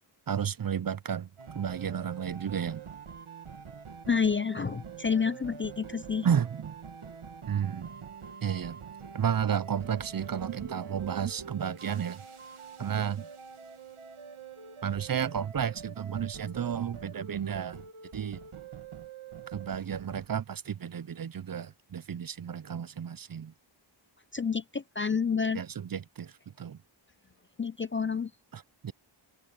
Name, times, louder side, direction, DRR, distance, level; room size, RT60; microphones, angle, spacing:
voice 1, 0.3-1.3 1.5-2.8 6.2-6.7 7.5-7.9 8.4-8.8 9.1-12.2 12.8-13.3 14.8-17.8 18.1-18.4 19.5-23.5 25.5-26.8 28.5-28.9, right 8 dB, 45° right, 0.6 m, -32 dB
sound 1, 1.4-20.3, right 6 dB, 85° right, 2.0 m, -46 dB
voice 2, 4.1-6.3 24.3-25.6 27.6-28.3, left 6 dB, 30° left, 0.4 m, -29 dB
wide cardioid pair, 85°, 49 cm